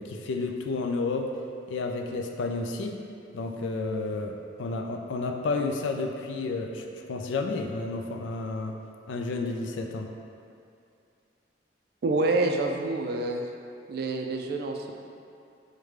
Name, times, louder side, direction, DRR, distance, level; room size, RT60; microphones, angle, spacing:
voice 1, 0.0-1.3 1.7-3.0 3.3-8.8 9.1-10.1, left 3 dB, 80° left, 4 dB, 0.3 m, -31 dB
voice 2, 12.0-13.4 13.9-14.9, right 2 dB, 55° right, 2 dB, 0.3 m, -27 dB
5.0 x 2.1 x 3.2 m, 2.4 s
head